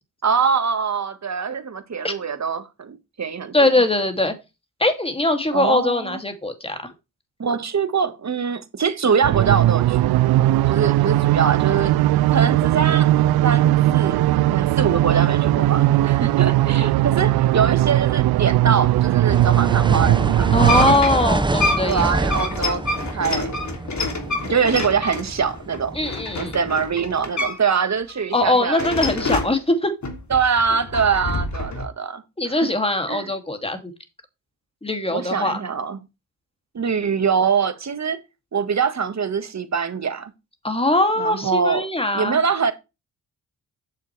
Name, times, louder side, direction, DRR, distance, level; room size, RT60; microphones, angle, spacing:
voice 1, 0.2-3.7 5.5-6.2 7.4-12.0 12.3-13.1 13.4-14.2 14.5-20.5 21.8-22.8 23.1-23.6 24.0-26.0 26.4-29.0 30.3-32.7 33.1-33.3 35.1-36.0 36.7-38.2 38.5-40.3 41.2-41.9 42.1-42.7, right 6 dB, 45° right, 1.8 m, -23 dB
voice 2, 3.5-4.3 4.8-6.8 20.5-22.1 25.9-26.6 28.3-29.9 32.4-33.9 34.8-35.6 40.6-42.4, left 2 dB, 15° left, 2.7 m, -21 dB
sound 1, 9.2-20.9, right 15 dB, 75° right, 0.5 m, -18 dB
sound 2, 19.3-27.3, right 2 dB, 10° right, 0.8 m, -26 dB
sound 3, 20.4-27.8 28.1-29.6 30.0-31.9, left 2 dB, 50° left, 3.1 m, -27 dB
9.4 x 6.8 x 3.4 m
supercardioid pair, 50°, 38 cm